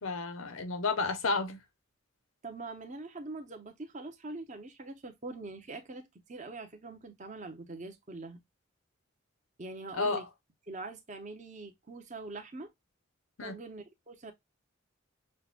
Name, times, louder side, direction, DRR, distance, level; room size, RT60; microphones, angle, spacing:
voice 1, 0.0-1.6 9.9-10.3 13.4-13.5, left 3 dB, 90° left, 0.9 m, -31 dB
voice 2, 2.4-8.4 9.6-10.2 10.7-12.7 13.4-14.3, right 3 dB, 35° right, 0.9 m, -43 dB
6.5 x 2.3 x 2.4 m
head